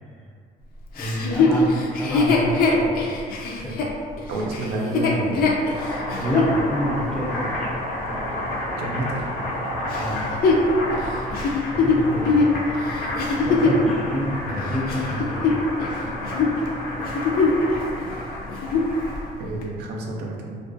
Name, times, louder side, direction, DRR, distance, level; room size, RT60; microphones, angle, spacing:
voice 1, 0.9-2.9 3.6-3.8 6.1-7.8 9.9-10.3 11.7-12.4 13.4-15.6, equal, 5° left, -6 dB, 0.5 m, -28 dB
Chuckle chortle, 1.0-6.5 7.1-7.2 9.9-13.9 14.5-16.0 16.2-16.5 17.0-17.7 18.0-18.1 18.5-19.0 19.6-19.7, left 3 dB, 60° left, 0.4 m, -22 dB
voice 2, 4.3-5.5 8.8-9.3 13.2-13.4 19.4-20.6, right 1 dB, 75° right, -1 dB, 0.4 m, -29 dB
Boiling, 5.5-19.3, left 1 dB, 90° left, 0.9 m, -30 dB
2.2 x 2.2 x 2.5 m, 2.1 s
cardioid pair, 110°, 17 cm